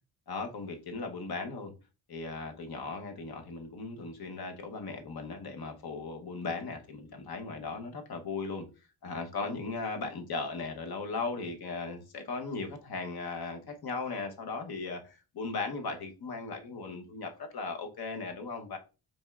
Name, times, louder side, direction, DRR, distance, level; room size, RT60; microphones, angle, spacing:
voice 1, 0.3-1.7 2.1-8.6 9.0-18.8, left 4 dB, 55° left, 1.0 m, -37 dB
5.2 x 4.3 x 2.3 m
wide cardioid pair, 115°, 43 cm